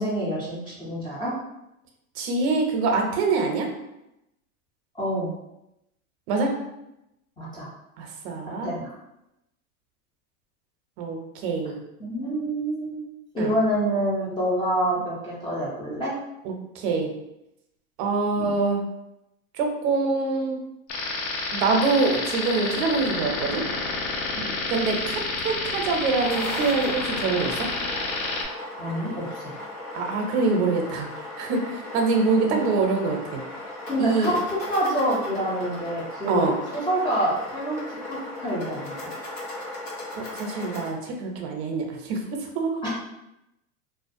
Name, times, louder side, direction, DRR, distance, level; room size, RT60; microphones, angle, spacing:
voice 1, 0.0-1.3 4.9-5.3 7.4-7.7 8.6-8.9 12.0-13.0 13.3-16.1 18.4-18.5 24.4-24.5 28.8-29.5 32.4-32.6 33.9-39.1 42.8-42.9, right 1 dB, 10° left, -7 dB, 0.4 m, -27 dB
voice 2, 2.2-3.7 6.3-6.5 8.0-8.7 11.0-11.8 13.4-13.6 16.4-17.1 18.0-18.8 19.5-20.6 21.5-23.6 24.7-27.7 29.9-33.4 34.0-34.3 36.3-36.6 40.2-42.2 42.5-42.8, right 4 dB, 50° right, 2 dB, 0.6 m, -25 dB
sound 1, 20.9-28.5, left 3 dB, 55° left, 0.6 m, -29 dB
sound 2, 26.0-40.9, left 1 dB, 90° left, 1.0 m, -37 dB
2.4 x 2.2 x 2.5 m, 0.87 s
supercardioid pair, 125°, 41 cm